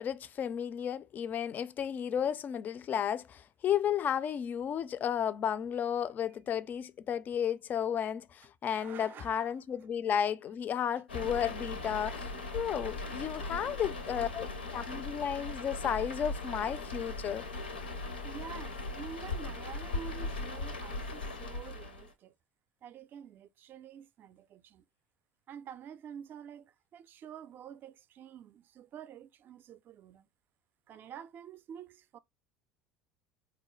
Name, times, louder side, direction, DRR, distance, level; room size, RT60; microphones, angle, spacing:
voice 1, 0.0-17.5, left 9 dB, 35° left, 0.3 m, -33 dB
voice 2, 8.7-9.5 18.2-22.3 22.8-24.8 25.5-30.3 30.9-32.2, right 8 dB, 40° right, 0.4 m, -48 dB
sound 1, 11.1-22.1, left 2 dB, 85° left, 0.6 m, -39 dB
3.9 x 2.1 x 3.1 m
figure-of-eight pair, 70°, 5 cm